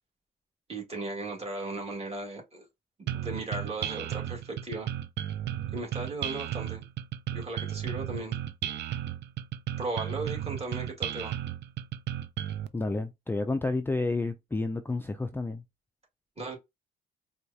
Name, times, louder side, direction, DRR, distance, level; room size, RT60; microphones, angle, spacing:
voice 1, 0.7-2.7 3.0-4.9 5.7-6.8 7.3-8.4 9.8-11.3 16.4-16.6, right 2 dB, 30° right, 1.9 m, -36 dB
sound 1, 3.1-12.7, right 11 dB, 60° right, 0.4 m, -34 dB
voice 2, 12.7-15.6, left 3 dB, 10° left, 0.4 m, -30 dB
4.5 x 2.3 x 2.7 m
cardioid pair, 90°, 20 cm